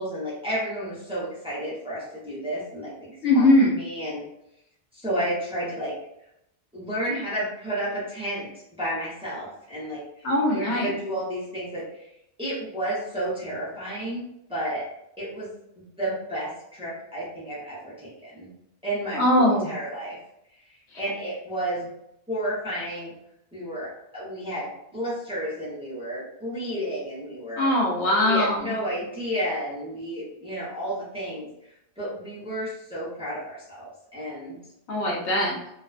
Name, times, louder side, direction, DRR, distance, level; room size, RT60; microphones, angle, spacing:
voice 1, 0.0-3.5 3.8-4.2 4.9-6.0 6.7-8.5 8.8-12.1 12.4-14.8 15.2-15.5 15.8-18.5 18.8-20.2 20.6-21.9 22.3-23.1 23.5-27.7 28.2-34.6, right 1 dB, 5° right, -9 dB, 0.7 m, -32 dB
voice 2, 3.2-3.7 10.2-10.9 19.1-19.7 27.6-28.7 34.9-35.5, left 1 dB, 80° left, -2 dB, 1.0 m, -21 dB
2.5 x 2.2 x 2.4 m, 0.81 s
omnidirectional pair, 1.1 m